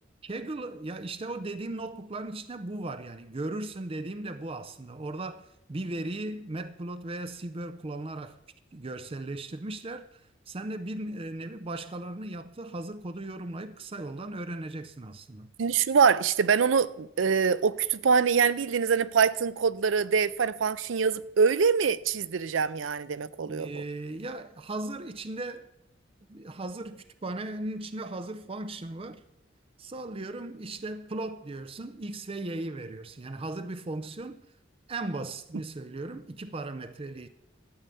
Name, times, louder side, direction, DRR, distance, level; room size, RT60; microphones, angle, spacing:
voice 1, 0.2-8.4 8.7-10.2 10.5-15.5 23.4-25.7 26.3-29.2 29.8-34.4 34.9-37.3, right 2 dB, 30° right, 0.5 m, -37 dB
voice 2, 15.6-23.7, right 6 dB, 80° right, 0.5 m, -24 dB
12.5 x 5.4 x 8.4 m
head